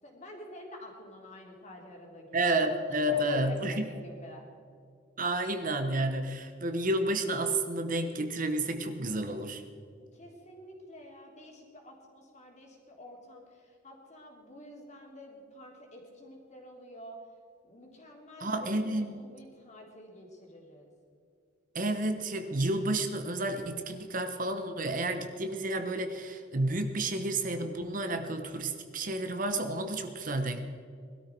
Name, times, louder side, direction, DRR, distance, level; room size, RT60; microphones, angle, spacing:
voice 1, 0.0-2.4 2.7-4.4 10.0-17.2 17.6-20.9, left 1 dB, 35° left, 0 dB, 3.2 m, -49 dB
voice 2, 2.3-3.9 5.2-9.6 18.4-19.2 21.7-30.7, right 1 dB, 45° right, 7 dB, 1.1 m, -31 dB
20.5 x 13.0 x 4.6 m, 2.4 s
head